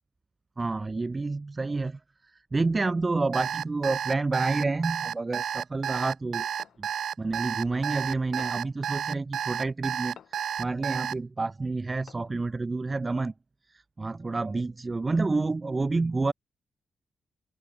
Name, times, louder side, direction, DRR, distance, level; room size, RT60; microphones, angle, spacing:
voice 1, 0.6-2.0 2.5-6.5 6.8-6.9 7.2-13.3 13.7-16.3, right 3 dB, 25° right, 0.5 m, -29 dB
Alarm, 3.3-11.1, right 9 dB, 75° right, 0.5 m, -31 dB
sound 1, 6.6-6.9 8.4-8.8 10.2-10.5 12.1-12.5, left 9 dB, 75° left, 7.9 m, -50 dB
open air
wide cardioid pair, 125°, 0 cm